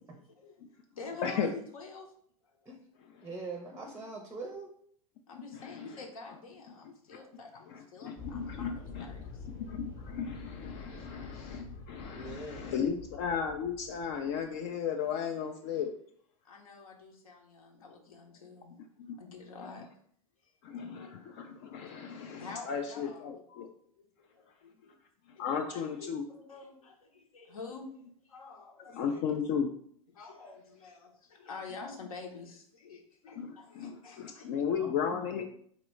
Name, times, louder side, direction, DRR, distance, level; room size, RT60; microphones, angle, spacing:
voice 1, 0.1-0.6 0.9-2.1 2.5-2.6 5.3-9.5 16.4-18.7 19.2-19.9 22.4-23.3 24.0-24.9 25.4-27.9 28.3-29.2 30.1-34.5, left 4 dB, 70° left, 1 dB, 0.9 m, -48 dB
voice 2, 3.2-4.7 10.9-11.1 12.1-12.9 34.8-35.5, right 3 dB, 15° right, 3 dB, 0.6 m, -43 dB
voice 3, 5.5-6.0 7.1-7.2 7.7-9.1 9.4-15.9 19.0-19.2 19.6-19.7 20.6-23.7 25.3-26.2 28.9-29.7 33.4-35.5, left 7 dB, 45° left, 3 dB, 0.4 m, -35 dB
sound 1, 8.2-14.6, left 4 dB, 15° left, 0.8 m, -46 dB
3.9 x 3.0 x 3.1 m, 0.63 s
figure-of-eight pair, 90°, 19 cm